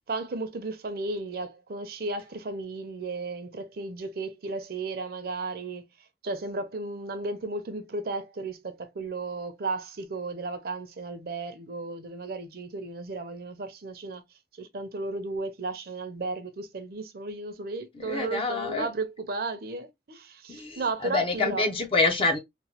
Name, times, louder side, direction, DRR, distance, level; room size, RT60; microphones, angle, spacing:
voice 1, 0.1-5.8 6.2-14.2 14.6-21.7, right 3 dB, 55° right, 0.5 m, -34 dB
voice 2, 17.9-18.9 20.5-22.4, left 3 dB, 30° left, 0.5 m, -27 dB
3.0 x 2.1 x 2.8 m
head